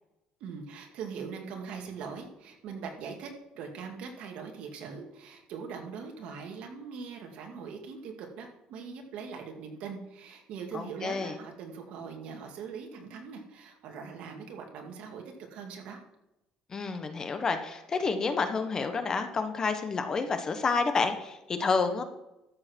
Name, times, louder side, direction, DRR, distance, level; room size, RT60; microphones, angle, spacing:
voice 1, 0.4-3.3 3.5-15.2 15.5-16.0, right 6 dB, 70° right, 2 dB, 2.3 m, -41 dB
voice 2, 10.7-11.4 16.7-22.0, left 4 dB, 30° left, 8 dB, 1.2 m, -29 dB
13.0 x 7.7 x 4.6 m, 0.92 s
cardioid pair, 130°, 2 cm